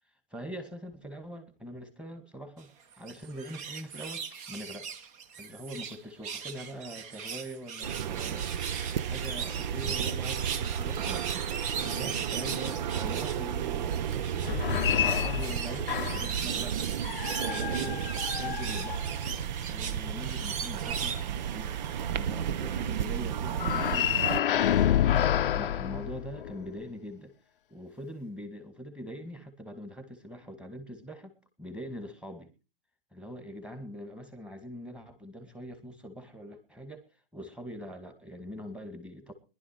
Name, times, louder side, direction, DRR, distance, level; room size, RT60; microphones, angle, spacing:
voice 1, 0.3-2.7 3.0-5.1 5.4-16.9 17.4-18.1 18.4-19.2 19.7-21.8 22.2-27.3 27.7-32.5 33.1-39.3, equal, 5° right, 8 dB, 2.2 m, -43 dB
sound 1, 2.9-6.0 6.2-13.4 13.9-21.3 21.8-21.9, right 6 dB, 25° right, 1.2 m, -38 dB
sound 2, 7.8-24.4, right 9 dB, 50° right, 0.7 m, -33 dB
sound 3, 14.4-16.4 17.0-19.4 23.5-26.7, left 10 dB, 65° left, 0.7 m, -28 dB
19.5 x 11.5 x 4.7 m, 0.35 s
hypercardioid pair, 130°, 29 cm